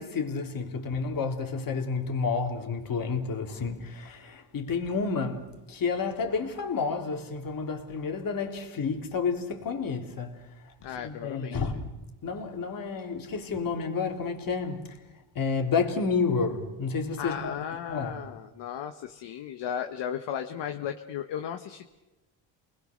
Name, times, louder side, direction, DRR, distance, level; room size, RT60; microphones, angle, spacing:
voice 1, 0.0-10.4 11.0-11.9 12.2-15.0 15.4-17.6 17.9-18.2, left 5 dB, 45° left, 3.5 m, -30 dB
voice 2, 10.8-11.6 17.2-22.0, left 9 dB, 60° left, 1.4 m, -35 dB
29.5 x 20.5 x 6.7 m
cardioid pair, 105°, 47 cm